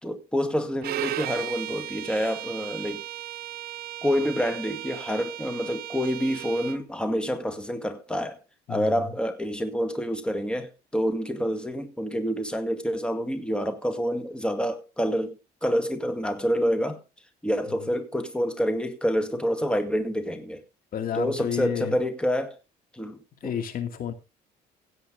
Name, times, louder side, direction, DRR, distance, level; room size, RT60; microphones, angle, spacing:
voice 1, 0.0-3.0 4.0-8.4 8.7-17.0 17.4-20.6 21.1-22.6 22.9-23.5, equal, 5° left, 2.0 m, -27 dB
Bowed string instrument, 0.8-6.8, right 15 dB, 65° right, 0.7 m, -36 dB
voice 2, 8.7-9.2 17.7-17.9 20.9-22.0 23.4-24.1, left 8 dB, 55° left, 2.6 m, -31 dB
16.5 x 8.0 x 3.7 m
cardioid pair, 110°, 17 cm